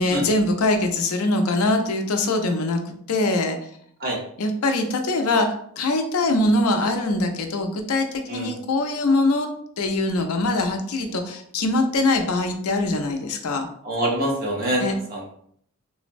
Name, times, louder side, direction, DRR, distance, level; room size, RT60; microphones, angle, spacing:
voice 1, 0.0-3.6 4.4-5.5 5.8-9.5 9.8-13.7 14.8-15.0, left 2 dB, 70° left, 5 dB, 0.5 m, -22 dB
voice 2, 13.8-14.8 15.1-15.2, right 1 dB, 40° right, -3 dB, 0.9 m, -25 dB
3.8 x 2.0 x 2.5 m, 0.65 s
head